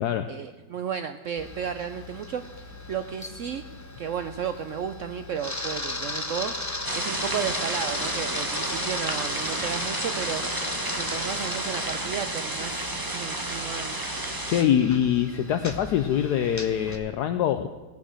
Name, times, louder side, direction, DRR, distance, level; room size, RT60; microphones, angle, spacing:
voice 1, 0.3-2.4 2.9-3.6 4.0-6.6 6.9-10.4 11.0-14.0, right 7 dB, 85° right, 9 dB, 0.6 m, -33 dB
Camera, 1.4-17.0, left 2 dB, 25° left, 0.3 m, -36 dB
sound 1, 6.8-14.6, right 1 dB, 15° right, 0.9 m, -31 dB
voice 2, 14.5-17.7, left 10 dB, 70° left, 8 dB, 1.1 m, -24 dB
18.0 x 7.1 x 6.4 m, 1.3 s
omnidirectional pair, 2.0 m